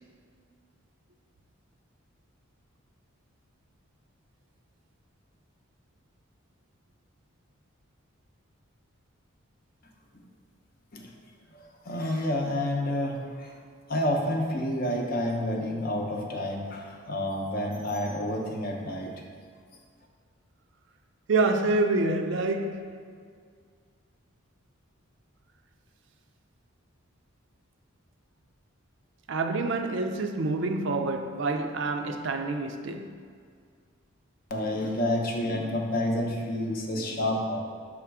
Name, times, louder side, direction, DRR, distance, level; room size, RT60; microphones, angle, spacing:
voice 1, 11.5-13.5 13.9-19.1 34.5-37.6, left 1 dB, 45° left, 0.7 m, -29 dB
voice 2, 21.3-23.0 29.3-33.1, right 3 dB, 60° right, 0.4 m, -27 dB
6.2 x 3.6 x 4.7 m
head